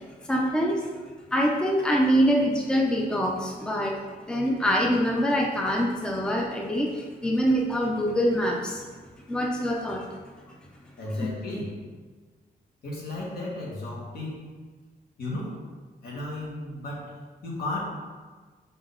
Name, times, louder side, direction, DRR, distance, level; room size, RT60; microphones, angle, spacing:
voice 1, 0.3-0.8 1.3-3.9 4.3-8.8 9.3-10.0 11.2-11.3, equal, 5° left, 0 dB, 0.5 m, -24 dB
voice 2, 11.0-11.8 12.8-14.4 15.2-15.6 16.0-17.1 17.4-17.8, left 2 dB, 70° left, -4 dB, 1.9 m, -34 dB
5.7 x 5.2 x 3.7 m, 1.4 s
wide cardioid pair, 170°, 16 cm